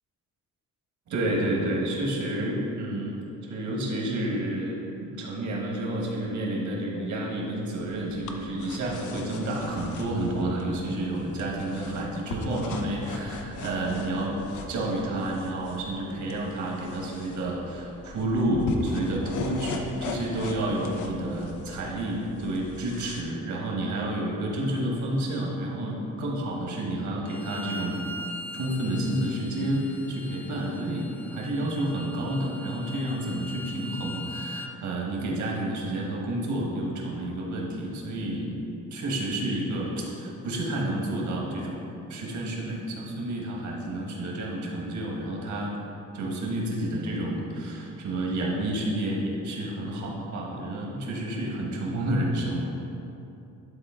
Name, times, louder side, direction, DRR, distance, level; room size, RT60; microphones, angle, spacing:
voice 1, 1.1-3.2 3.4-14.4 14.7-28.1 28.5-38.6 38.9-45.7 46.1-52.7, right 1 dB, 70° right, -2 dB, 1.6 m, -30 dB
sound 1, 7.7-23.2, left 3 dB, 75° left, 0.7 m, -39 dB
Bowed string instrument, 27.2-34.7, left 1 dB, 5° left, 0.4 m, -41 dB
10.5 x 3.8 x 3.8 m, 2.8 s
cardioid pair, 90°, 30 cm